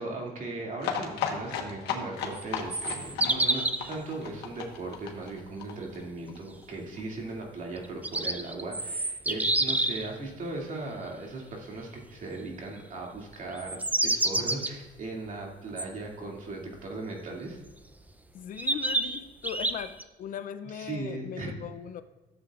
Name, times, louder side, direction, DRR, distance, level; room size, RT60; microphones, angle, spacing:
voice 1, 0.0-17.6 20.7-21.5, right 2 dB, 50° right, -1 dB, 2.4 m, -38 dB
sound 1, 0.8-6.4 6.6-6.7 7.0-7.1 7.3-7.4, left 7 dB, 85° left, 1.3 m, -34 dB
sound 2, 2.3-3.9 7.8-10.1 13.5-14.7 15.8-15.9 17.7-17.8 18.6-20.0, right 2 dB, 10° right, 0.5 m, -28 dB
voice 2, 18.3-22.0, left 9 dB, 55° left, 12 dB, 0.5 m, -39 dB
13.0 x 7.6 x 2.4 m, 1.2 s
cardioid pair, 110°, 17 cm